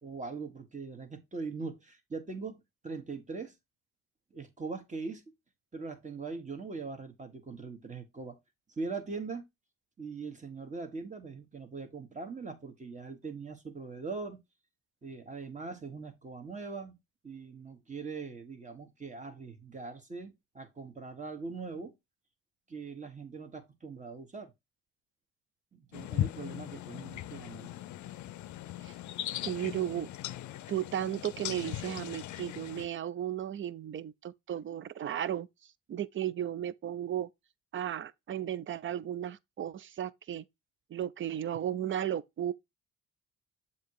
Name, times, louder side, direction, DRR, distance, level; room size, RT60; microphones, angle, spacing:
voice 1, 0.0-3.5 4.3-5.2 5.7-8.4 8.8-9.4 10.0-14.4 15.0-17.0 17.2-21.9 22.7-24.5 25.7-27.7, right 4 dB, 25° right, 1.4 m, -41 dB
sound 1, 25.9-32.9, left 13 dB, 75° left, 0.5 m, -39 dB
voice 2, 29.4-30.1 30.7-35.5 35.9-37.3 37.7-40.4 40.9-42.5, right 11 dB, 40° right, 0.5 m, -35 dB
7.3 x 2.9 x 4.7 m
cardioid pair, 90°, 30 cm